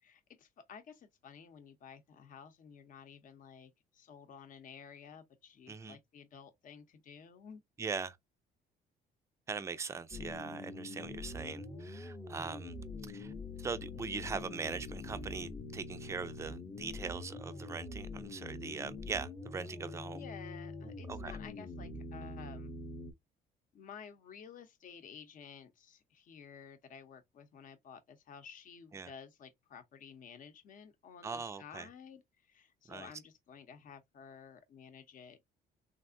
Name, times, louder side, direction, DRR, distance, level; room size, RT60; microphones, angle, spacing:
voice 1, 0.0-7.6 20.1-22.7 23.7-35.4, left 7 dB, 50° left, 0.8 m, -53 dB
voice 2, 7.8-8.2 9.5-12.7 13.1-13.3 13.6-20.2 21.1-21.3 28.9-29.1 31.2-31.9 32.9-33.1, right 5 dB, 15° right, 0.4 m, -41 dB
sound 1, 10.1-23.1, left 2 dB, 20° left, 0.7 m, -44 dB
3.3 x 2.5 x 2.5 m
cardioid pair, 110°, 17 cm